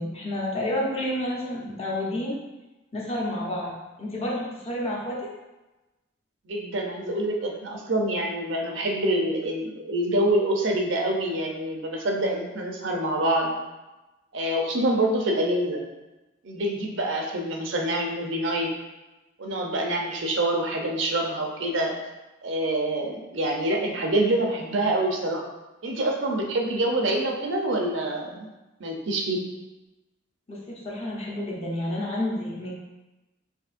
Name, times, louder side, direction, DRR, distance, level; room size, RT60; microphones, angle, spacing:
voice 1, 0.0-2.4 2.9-5.3 30.5-32.7, left 1 dB, 30° left, -4 dB, 0.9 m, -30 dB
voice 2, 6.5-13.5 14.3-15.9 16.4-18.7 19.4-21.9 22.4-25.4 25.8-28.5 28.8-29.4, right 1 dB, 70° right, 1 dB, 0.6 m, -26 dB
5.2 x 2.9 x 2.5 m, 1.1 s
head